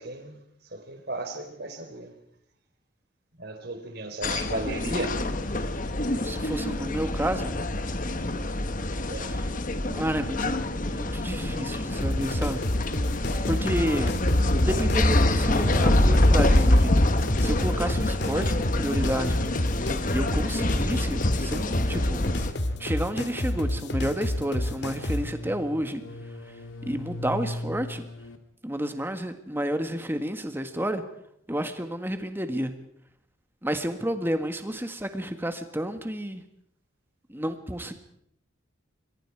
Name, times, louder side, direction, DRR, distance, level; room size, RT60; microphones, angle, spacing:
voice 1, 0.0-2.1 3.4-5.2 9.1-9.3, right 2 dB, 55° right, 6 dB, 4.2 m, -35 dB
sound 1, 4.2-22.5, left 1 dB, 40° left, 1.3 m, -25 dB
voice 2, 6.2-7.6 9.2-9.4 9.9-10.5 10.9-12.6 13.5-14.3 14.6-17.0 17.4-19.4 20.1-22.3 22.8-26.0 26.8-28.0 28.6-31.0 31.5-32.7 33.6-36.4 37.3-37.9, right 1 dB, 10° right, 7 dB, 1.7 m, -30 dB
sound 2, 12.0-25.3, left 1 dB, 60° left, 1.9 m, -29 dB
sound 3, 22.4-28.4, left 1 dB, 80° left, 2.5 m, -39 dB
26.5 x 23.0 x 4.8 m, 0.71 s
head